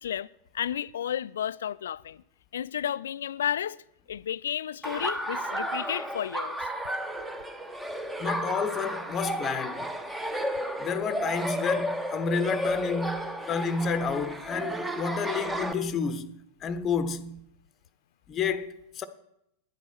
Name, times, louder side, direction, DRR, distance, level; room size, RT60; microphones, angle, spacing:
voice 1, 0.5-2.2 2.5-3.8 4.1-6.6, left 10 dB, 65° left, 0.3 m, -32 dB
Laughter, 4.8-15.7, equal, 5° right, 1.0 m, -32 dB
voice 2, 8.2-9.9 10.8-16.4 16.6-17.4 18.3-19.0, left 5 dB, 25° left, 0.8 m, -30 dB
10.5 x 8.3 x 6.1 m
figure-of-eight pair, 90°, 0 cm